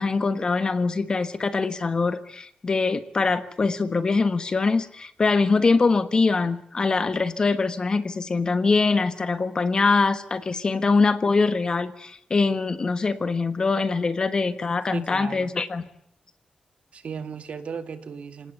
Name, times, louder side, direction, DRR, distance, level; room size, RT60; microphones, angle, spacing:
voice 1, 0.0-15.8, left 4 dB, 30° left, 12 dB, 1.4 m, -23 dB
voice 2, 14.9-15.5 16.9-18.5, right 6 dB, 55° right, 10 dB, 2.1 m, -35 dB
27.5 x 18.5 x 7.9 m, 0.70 s
wide cardioid pair, 180°, 3 cm